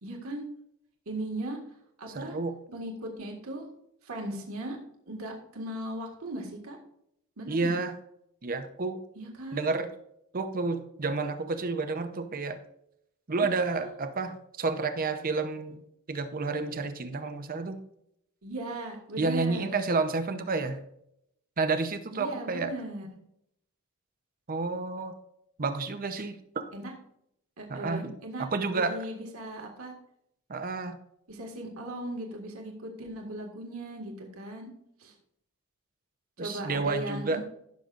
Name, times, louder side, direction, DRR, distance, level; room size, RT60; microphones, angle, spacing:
voice 1, 0.0-0.4 1.1-1.6 2.0-2.4 2.7-3.7 4.0-4.8 5.1-6.8 7.4-7.8 9.2-9.7 13.6-13.9 18.4-19.7 22.1-23.1 26.7-26.9 27.6-29.9 31.3-34.7 35.0-35.1 36.4-37.4, right 1 dB, 80° right, 1 dB, 1.8 m, -38 dB
voice 2, 2.1-2.5 7.5-7.9 8.4-9.0 9.5-9.9 10.3-12.6 13.3-15.8 16.1-17.8 19.2-20.8 21.6-22.7 24.5-25.1 25.6-26.7 27.7-28.1 28.4-29.0 30.5-31.0 36.4-37.4, right 3 dB, 40° right, 9 dB, 0.7 m, -30 dB
15.5 x 6.6 x 2.5 m, 0.76 s
head